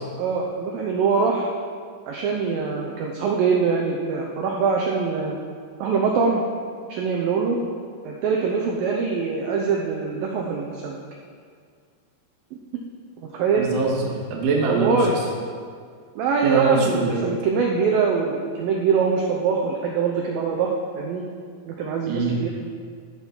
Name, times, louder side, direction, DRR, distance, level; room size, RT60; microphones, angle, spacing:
voice 1, 0.2-1.5 2.1-5.4 5.8-6.4 6.9-7.6 8.0-11.0 13.2-13.7 14.7-15.1 16.2-21.2 21.7-22.5, right 5 dB, 80° right, 0 dB, 2.1 m, -23 dB
voice 2, 13.6-15.2 16.4-17.2 22.1-22.4, right 3 dB, 55° right, -2 dB, 2.0 m, -23 dB
13.0 x 4.5 x 5.9 m, 2.1 s
omnidirectional pair, 4.8 m